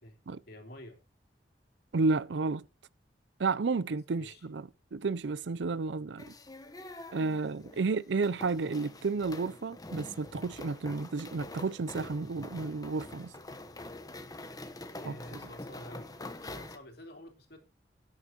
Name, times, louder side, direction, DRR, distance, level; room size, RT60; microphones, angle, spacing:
voice 1, 0.5-1.0 4.2-4.4 7.5-7.8 14.9-17.6, left 1 dB, 60° left, 3.2 m, -49 dB
voice 2, 1.9-2.6 3.4-6.3 7.1-13.3 15.1-15.2, right 4 dB, 70° right, 0.5 m, -32 dB
sound 1, 6.2-16.8, left 2 dB, 20° left, 1.2 m, -45 dB
18.0 x 9.8 x 2.9 m
head